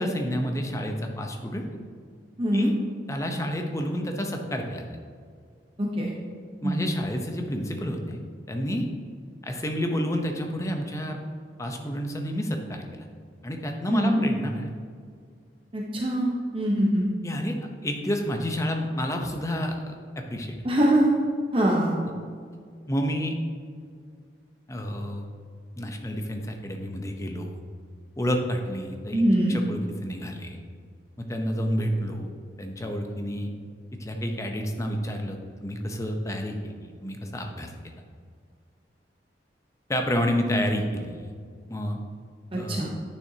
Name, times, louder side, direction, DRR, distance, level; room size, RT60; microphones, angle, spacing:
voice 1, 0.0-1.7 2.5-2.7 3.1-4.9 6.6-8.2 8.5-8.9 9.4-11.2 11.6-13.0 13.4-14.7 17.2-17.5 17.8-20.5 22.9-23.4 24.7-25.2 25.8-27.6 28.2-29.2 29.5-30.6 31.2-32.3 32.6-33.5 34.0-37.9 39.9-41.3 41.7-42.0 42.5-42.9, equal, 15° left, 3 dB, 0.7 m, -29 dB
voice 2, 2.4-2.7 5.8-6.1 6.6-6.8 13.9-14.2 15.7-17.1 20.6-21.1 21.5-22.0 29.1-29.6 42.5-42.9, right 1 dB, 30° right, -2 dB, 0.8 m, -23 dB
9.3 x 6.7 x 2.8 m, 2.1 s
head